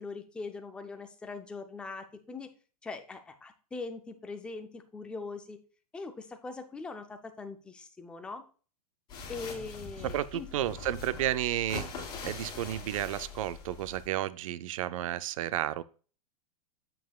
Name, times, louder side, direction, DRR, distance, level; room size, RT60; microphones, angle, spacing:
voice 1, 0.0-2.5 2.8-5.6 5.9-8.4 9.3-10.5, left 4 dB, 5° left, 6 dB, 0.4 m, -41 dB
sound 1, 9.1-14.1, left 4 dB, 20° left, 2.5 m, -42 dB
voice 2, 10.1-11.9 12.2-15.8, right 13 dB, 60° right, 16 dB, 0.4 m, -32 dB
9.2 x 7.0 x 2.3 m, 0.39 s
supercardioid pair, 160°, 20 cm